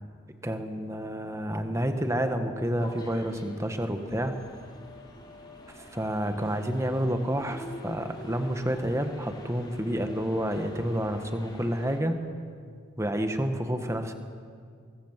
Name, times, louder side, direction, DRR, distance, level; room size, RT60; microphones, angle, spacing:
voice 1, 0.4-4.4 5.7-12.2 13.0-14.1, equal, 15° right, 6 dB, 1.5 m, -29 dB
sound 1, 2.8-12.0, left 1 dB, 20° left, 3.3 m, -47 dB
25.0 x 23.0 x 7.5 m, 2.2 s
head